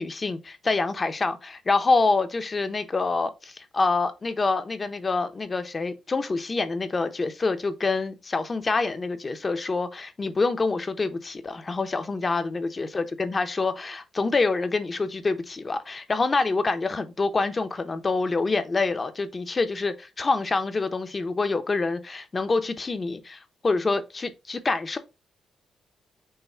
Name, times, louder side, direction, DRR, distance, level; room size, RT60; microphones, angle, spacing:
voice 1, 0.0-25.0, left 3 dB, 30° left, 0.5 m, -26 dB
5.5 x 2.0 x 4.2 m
cardioid pair, 105°, 0 cm